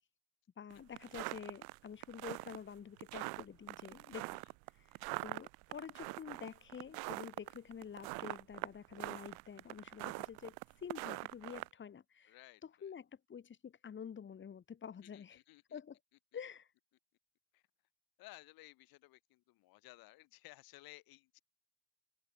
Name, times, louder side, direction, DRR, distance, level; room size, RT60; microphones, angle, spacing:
voice 1, 0.6-4.4 4.7-15.4 15.7-16.0 16.3-16.7, left 7 dB, 30° left, 7.6 m, -49 dB
sound 1, 0.7-11.7, right 28 dB, 65° right, 1.5 m, -43 dB
voice 2, 12.3-12.9 15.0-15.8 17.5-17.6 18.2-21.4, left 20 dB, 60° left, 6.3 m, -58 dB
open air
supercardioid pair, 125°, 40 cm